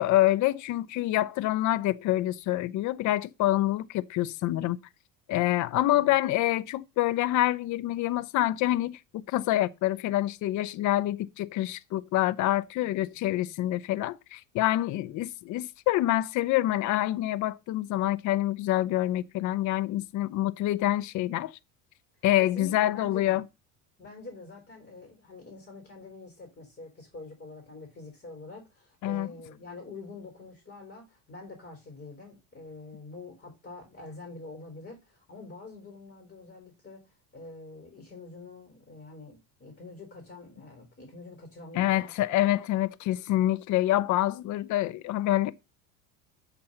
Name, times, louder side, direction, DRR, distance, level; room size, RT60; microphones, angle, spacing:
voice 1, 0.0-4.8 5.3-21.5 22.2-23.4 29.0-29.3 41.7-45.5, left 15 dB, 45° left, 0.6 m, -26 dB
voice 2, 12.8-13.2 14.9-15.2 22.4-23.4 24.0-37.0 37.3-42.1, left 3 dB, 25° left, 4.1 m, -46 dB
6.9 x 4.3 x 6.6 m
hypercardioid pair, 85°, 40 cm